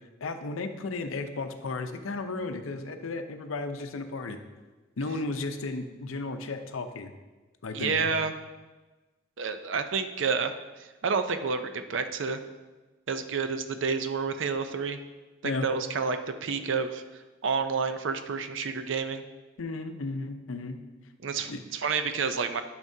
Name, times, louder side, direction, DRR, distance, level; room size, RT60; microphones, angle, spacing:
voice 1, 0.2-4.4 5.0-7.1 7.6-8.1 15.4-15.7 19.6-20.8 21.5-21.6, left 3 dB, 80° left, 7 dB, 0.6 m, -34 dB
voice 2, 7.7-8.4 9.4-10.5 11.0-12.4 13.1-15.0 15.4-17.0 17.4-19.2 21.2-22.6, right 5 dB, 65° right, 9 dB, 0.5 m, -29 dB
10.5 x 6.0 x 2.7 m, 1.2 s
head